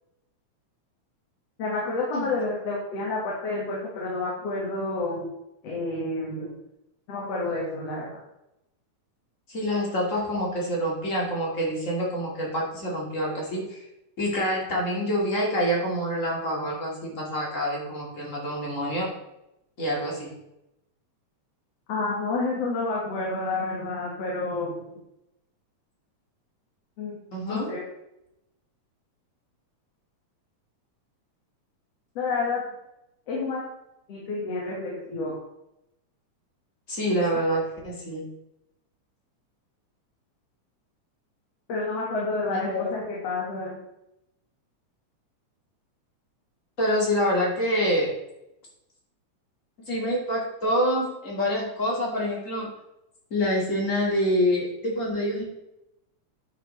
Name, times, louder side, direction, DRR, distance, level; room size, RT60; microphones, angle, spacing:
voice 1, 1.6-5.3 5.6-6.5 7.1-8.1 21.9-24.7 27.0-27.2 27.5-27.8 32.2-32.6 33.3-33.7 34.1-35.4 41.7-43.8, left 3 dB, 60° left, -4 dB, 2.6 m, -29 dB
voice 2, 9.5-13.8 14.2-19.1 19.8-20.3 27.3-27.7 36.9-38.2 42.5-42.9 46.8-48.1 49.9-52.7 53.3-55.4, equal, 30° left, -3 dB, 2.0 m, -26 dB
9.8 x 6.7 x 3.2 m, 0.85 s
omnidirectional pair, 3.4 m